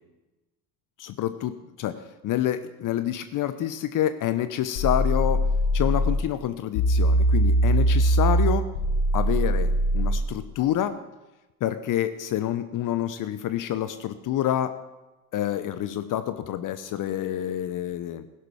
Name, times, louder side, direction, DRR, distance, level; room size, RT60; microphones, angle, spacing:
voice 1, 1.0-5.5 5.7-8.7 9.1-11.0 11.6-14.8 15.3-18.3, left 11 dB, 45° left, 12 dB, 0.8 m, -28 dB
sound 1, 4.8-6.2 6.7-10.2, right 1 dB, 65° left, 3.3 m, -21 dB
16.0 x 11.0 x 4.8 m, 1.0 s
figure-of-eight pair, 55°, 46 cm